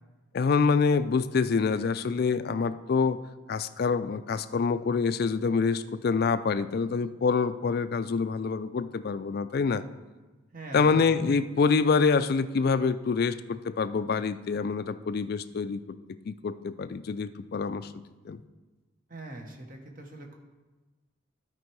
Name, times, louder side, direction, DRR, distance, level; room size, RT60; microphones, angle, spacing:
voice 1, 0.3-3.2 3.5-9.8 10.7-15.8 16.3-17.9 18.2-18.4, left 5 dB, 50° left, 13 dB, 0.3 m, -26 dB
voice 2, 10.5-11.4 19.1-20.3, right 2 dB, 45° right, 2 dB, 1.1 m, -42 dB
12.0 x 4.5 x 4.7 m, 1.2 s
head